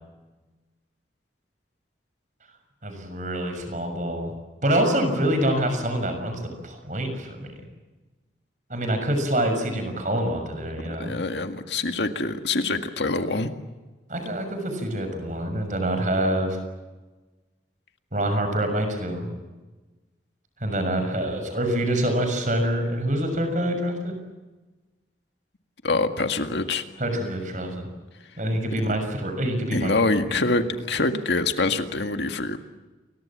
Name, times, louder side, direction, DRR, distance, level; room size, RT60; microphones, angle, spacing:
voice 1, 2.8-4.3 4.6-7.5 8.7-11.2 14.1-16.6 18.1-19.3 20.6-24.1 27.0-27.9 28.4-29.9 30.3-30.4, right 1 dB, 45° right, 6 dB, 6.4 m, -26 dB
voice 2, 10.8-13.5 25.8-26.8 28.8-28.9 29.7-32.6, left 3 dB, 75° left, 6 dB, 1.9 m, -25 dB
29.0 x 23.0 x 7.4 m, 1.2 s
head